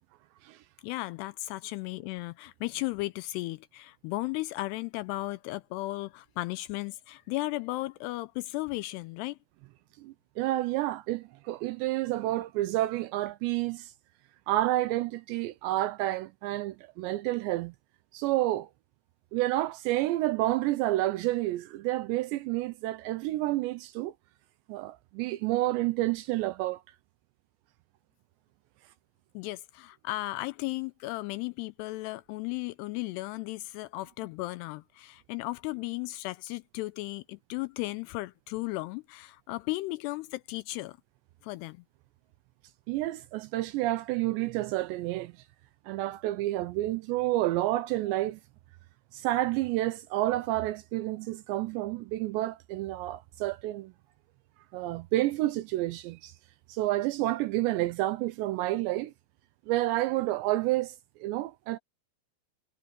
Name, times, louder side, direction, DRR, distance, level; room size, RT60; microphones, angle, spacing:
voice 1, 0.8-9.4 29.3-41.0 41.4-41.8 48.1-48.2, left 20 dB, 85° left, 2.3 m, -35 dB
voice 2, 10.0-13.9 14.5-17.7 18.1-18.7 19.3-24.1 24.7-26.8 42.9-45.3 45.9-48.4 49.1-53.9 54.7-56.3 56.7-59.1 59.7-61.8, right 16 dB, 80° right, 2.8 m, -29 dB
omnidirectional pair, 5.3 m